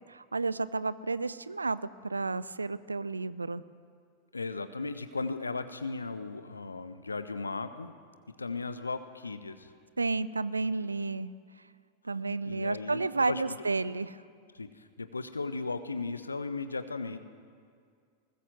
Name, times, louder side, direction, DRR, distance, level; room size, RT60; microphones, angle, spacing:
voice 1, 0.1-3.6 10.0-11.3 12.0-14.2, right 3 dB, 80° right, 18 dB, 0.6 m, -31 dB
voice 2, 4.3-7.9 8.3-9.7 12.4-13.4 14.5-17.2, left 3 dB, 80° left, 11 dB, 1.0 m, -36 dB
20.5 x 19.5 x 7.8 m, 2.2 s
figure-of-eight pair, 90°, 0 cm